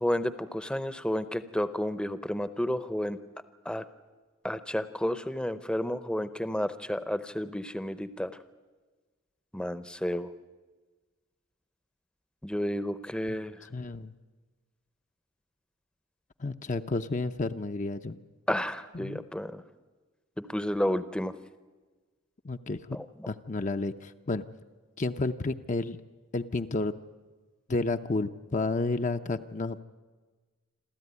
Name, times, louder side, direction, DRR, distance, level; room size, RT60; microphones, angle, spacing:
voice 1, 0.0-3.2 3.7-3.8 4.4-8.3 9.5-10.3 12.4-13.5 18.5-19.6 20.5-21.3 22.9-23.3, equal, 5° left, 12 dB, 0.7 m, -31 dB
voice 2, 13.3-14.1 16.4-18.2 18.9-19.2 22.4-23.0 23.3-24.4 25.0-26.0 26.3-26.9 27.7-29.8, left 3 dB, 35° left, 7 dB, 0.6 m, -31 dB
27.5 x 13.5 x 9.6 m, 1.3 s
head